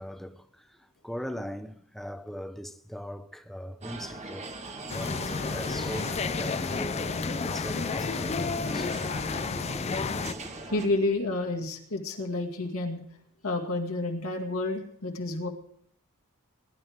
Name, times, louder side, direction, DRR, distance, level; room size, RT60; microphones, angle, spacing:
voice 1, 0.0-4.5 4.9-10.7, equal, ahead, 0.8 m, -41 dB
sound 1, 3.8-10.9, right 2 dB, 30° right, 1.4 m, -41 dB
sound 2, 4.9-10.3, left 4 dB, 30° left, 0.4 m, -31 dB
voice 2, 10.7-13.0 13.4-15.5, left 2 dB, 70° left, 2.2 m, -30 dB
21.0 x 11.0 x 3.6 m
head